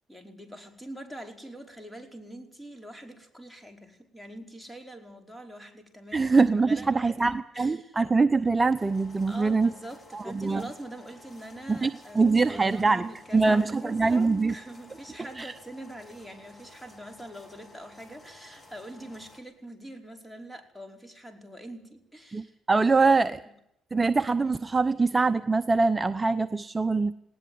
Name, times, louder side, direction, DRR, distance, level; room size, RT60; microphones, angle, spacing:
voice 1, 0.1-6.4 6.7-8.0 9.3-22.6 22.9-23.4, right 1 dB, 5° left, 5 dB, 5.2 m, -44 dB
voice 2, 6.1-9.7 10.1-10.6 11.7-11.9 12.1-14.5 15.4-15.5 22.3-23.4 23.9-27.1, right 4 dB, 20° right, 10 dB, 0.8 m, -23 dB
sound 1, 8.7-19.4, left 1 dB, 25° left, 4.5 m, -53 dB
19.5 x 19.0 x 9.5 m, 0.80 s
cardioid pair, 90°, 0 cm